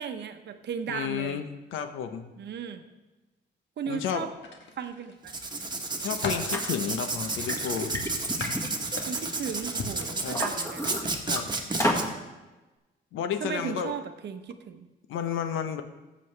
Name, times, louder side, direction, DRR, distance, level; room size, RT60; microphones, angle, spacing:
voice 1, 0.0-1.4 2.4-2.9 3.8-4.3 4.8-5.3 9.1-11.0 13.4-14.9, right 7 dB, 60° right, 9 dB, 0.9 m, -36 dB
voice 2, 0.9-2.3 3.9-4.2 6.0-7.9 10.2-10.4 11.3-11.5 13.1-13.9 15.1-15.8, left 8 dB, 85° left, 8 dB, 0.9 m, -32 dB
sound 1, 4.4-5.2 5.7-6.6 7.9-9.4 9.8-10.1 10.9-11.1 11.5-11.7, left 4 dB, 70° left, 1.5 m, -37 dB
Writing, 5.2-12.0, right 3 dB, 20° right, 1.3 m, -32 dB
Liquid, 6.5-6.6 7.2-9.6 10.0-11.4 11.8-12.1, equal, 15° left, 1.8 m, -31 dB
13.5 x 7.6 x 3.3 m, 1.1 s
cardioid pair, 90°, 20 cm